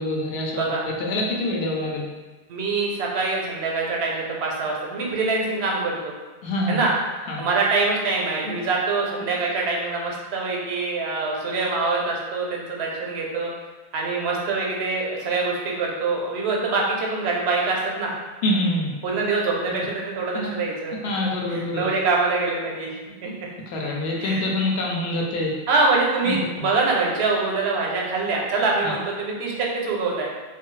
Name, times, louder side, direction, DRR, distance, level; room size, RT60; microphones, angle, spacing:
voice 1, 0.0-0.6 0.9-2.1 6.4-6.8 7.3-7.4 18.4-18.9 19.7-19.8 20.3-20.5 21.0-21.9 23.7-25.6 26.2-26.7 28.8-28.9, left 1 dB, 75° left, -1 dB, 0.8 m, -25 dB
voice 2, 0.5-0.9 2.5-6.1 6.7-6.9 7.4-13.5 13.9-18.1 19.0-20.9 21.5-23.3 24.2-24.5 25.7-30.3, right 3 dB, 85° right, -2 dB, 0.9 m, -24 dB
2.6 x 2.3 x 3.0 m, 1.3 s
omnidirectional pair, 1.1 m